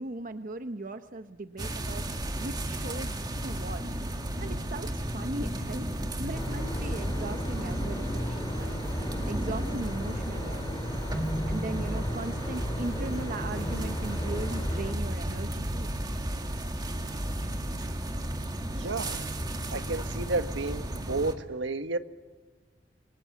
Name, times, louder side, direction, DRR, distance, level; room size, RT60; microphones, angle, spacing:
voice 1, 0.0-2.0 2.4-3.8 4.3-8.8 9.3-11.0 11.5-15.9, right 2 dB, 45° right, 0.9 m, -38 dB
sound 1, 1.6-21.3, right 1 dB, 20° right, 2.0 m, -33 dB
sound 2, 6.3-14.9, left 1 dB, 25° left, 3.1 m, -39 dB
sound 3, 8.8-20.3, equal, 65° left, 2.8 m, -49 dB
voice 2, 18.7-19.3 19.7-22.0, right 3 dB, 75° right, 1.4 m, -31 dB
28.0 x 23.5 x 7.5 m
head